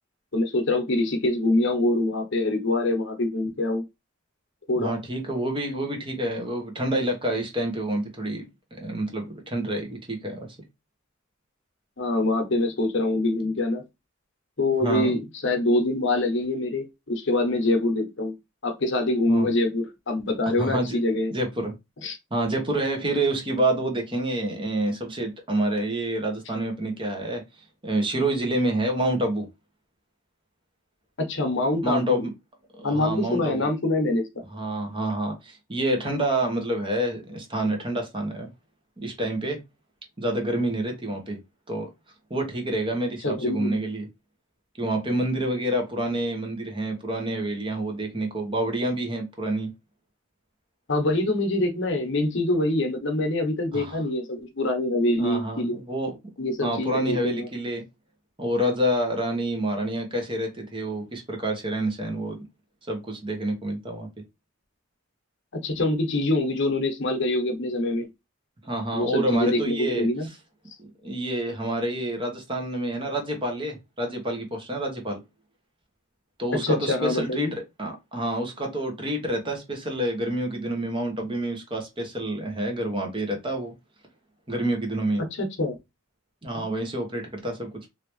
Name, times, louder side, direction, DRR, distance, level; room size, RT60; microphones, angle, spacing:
voice 1, 0.3-3.8 4.7-4.9 12.0-13.8 14.6-18.3 18.6-21.3 22.0-22.2 31.2-32.2 32.8-34.4 43.2-43.8 50.9-55.8 56.4-57.5 65.6-68.1 68.9-70.3 76.6-77.5 85.3-85.8 86.6-86.7, left 2 dB, 60° left, 0.9 m, -25 dB
voice 2, 4.7-10.5 14.8-15.1 19.3-19.5 20.4-21.0 21.3-21.7 22.3-27.4 27.8-29.5 31.8-32.3 32.7-33.7 34.5-38.5 39.0-39.6 40.2-41.4 41.7-41.9 42.3-44.1 44.8-49.7 53.7-54.0 55.2-56.2 56.6-57.8 58.4-62.4 62.9-64.1 68.6-70.1 70.8-75.2 76.4-83.7 84.5-85.2 86.4-87.9, right 1 dB, 25° right, 1.0 m, -28 dB
3.2 x 2.7 x 3.1 m
head